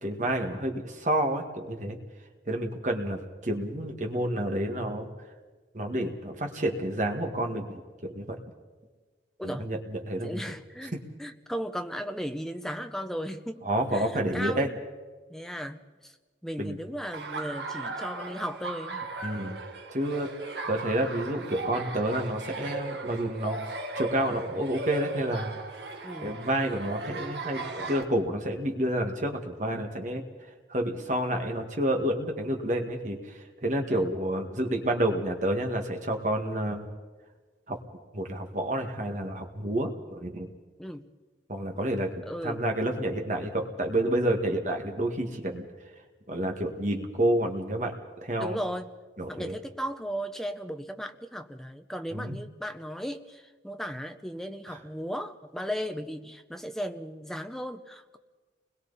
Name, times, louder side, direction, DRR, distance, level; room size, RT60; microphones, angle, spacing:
voice 1, 0.0-2.0 2.5-5.1 5.7-8.4 9.4-10.6 10.9-11.0 13.6-14.7 16.6-16.8 19.2-19.6 19.9-20.3 20.7-23.6 24.0-25.5 26.2-30.2 30.7-33.2 33.6-36.9 37.7-37.8 38.1-40.5 41.5-45.7 46.3-48.6 49.2-49.5 52.1-52.4 54.7-54.8, right 1 dB, 40° right, 3 dB, 1.9 m, -29 dB
voice 2, 9.4-9.7 10.2-10.9 11.2-13.6 13.9-14.8 15.3-16.2 16.4-19.0 26.0-26.4 33.9-34.1 40.8-41.1 42.3-42.6 48.4-48.9 49.3-58.2, equal, ahead, 6 dB, 0.8 m, -36 dB
Laughter, 17.1-28.0, right 3 dB, 70° right, 1.7 m, -37 dB
29.5 x 21.5 x 4.1 m, 1.3 s
head